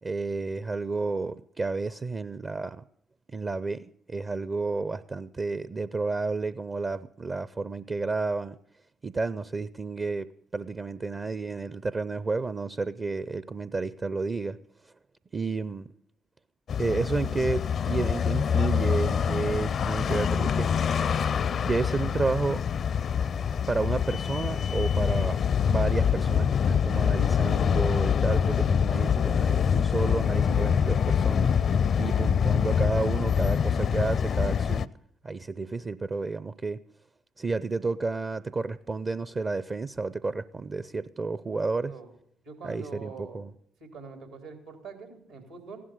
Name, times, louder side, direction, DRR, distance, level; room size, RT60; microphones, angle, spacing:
voice 1, 0.0-2.8 3.3-8.6 9.0-14.6 15.3-15.9 16.8-21.0 21.6-22.6 23.7-25.4 25.6-31.5 32.0-34.9 35.2-36.8 37.4-41.9 42.6-43.5, right 3 dB, 35° right, 16 dB, 0.6 m, -31 dB
sound 1, 16.7-34.8, left 7 dB, 55° left, 0.5 m, -25 dB
voice 2, 42.4-43.5 43.8-45.8, right 4 dB, 85° right, 5 dB, 3.5 m, -44 dB
16.0 x 11.0 x 6.6 m, 0.66 s
hypercardioid pair, 45°, 0 cm